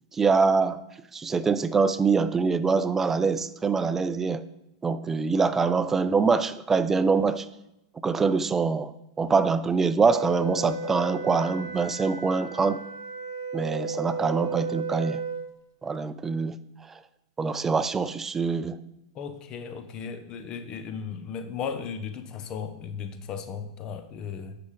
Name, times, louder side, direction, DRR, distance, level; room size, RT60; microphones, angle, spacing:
voice 1, 0.1-0.8 1.1-4.4 4.8-7.5 8.0-8.9 9.2-12.8 13.5-15.2 15.8-16.5 17.4-18.8, right 4 dB, 15° right, 13 dB, 0.5 m, -24 dB
Wind instrument woodwind instrument, 10.0-15.5, right 3 dB, 75° right, 0.7 m, -34 dB
voice 2, 19.1-24.6, left 6 dB, 35° left, 9 dB, 0.8 m, -36 dB
10.0 x 5.7 x 3.7 m, 0.88 s
hypercardioid pair, 105°, 2 cm